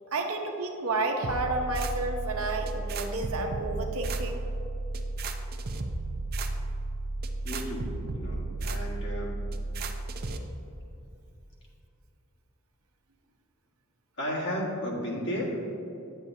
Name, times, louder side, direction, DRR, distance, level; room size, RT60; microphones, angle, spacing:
voice 1, 0.1-4.4, right 2 dB, 65° right, 3 dB, 0.8 m, -31 dB
sound 1, 1.2-10.4, right 2 dB, 45° right, 0.5 m, -33 dB
voice 2, 7.4-9.4 14.2-15.7, equal, 50° left, -4 dB, 1.6 m, -33 dB
9.7 x 8.1 x 2.7 m, 2.7 s
head